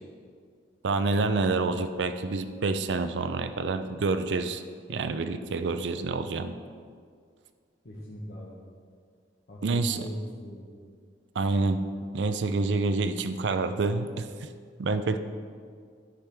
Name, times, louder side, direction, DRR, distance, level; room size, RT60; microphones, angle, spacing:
voice 1, 0.8-4.6 4.9-6.5 9.6-10.1 11.4-11.8 12.1-14.3 14.8-15.2, right 3 dB, 80° right, 10 dB, 0.5 m, -27 dB
voice 2, 7.8-8.6 9.5-10.7 15.0-15.2, equal, 65° left, -5 dB, 1.2 m, -40 dB
12.0 x 5.9 x 3.5 m, 2.1 s
head